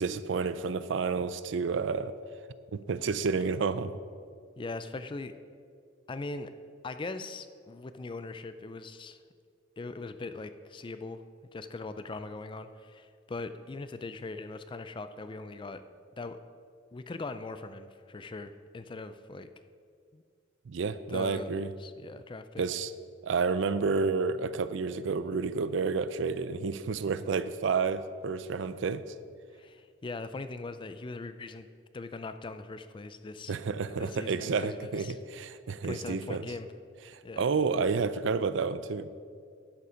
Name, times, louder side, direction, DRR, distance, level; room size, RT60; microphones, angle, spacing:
voice 1, 0.0-2.1 2.7-3.9 20.7-21.7 22.6-22.9 23.2-29.0 33.5-36.5 37.1-39.1, right 5 dB, 65° right, 14 dB, 0.4 m, -30 dB
voice 2, 4.6-5.3 6.1-6.5 6.8-9.2 9.8-11.2 11.5-15.8 16.2-16.4 16.9-19.5 20.1-20.2 21.1-21.5 21.8-22.6 29.5-31.7 31.9-33.5 33.8-35.2 35.8-36.7 37.2-37.5, left 3 dB, 25° left, 11 dB, 0.4 m, -40 dB
11.0 x 7.1 x 5.0 m, 2.2 s
head